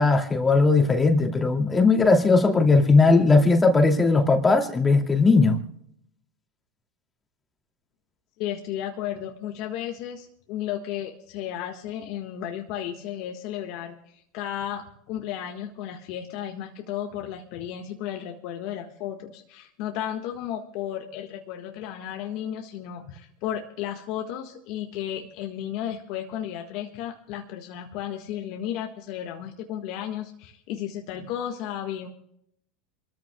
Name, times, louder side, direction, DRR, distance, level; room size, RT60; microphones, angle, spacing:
voice 1, 0.0-5.6, left 3 dB, 20° left, 2.6 m, -18 dB
voice 2, 8.4-32.1, left 10 dB, 65° left, 1.6 m, -34 dB
27.5 x 14.0 x 2.3 m
hypercardioid pair, 100°, 0 cm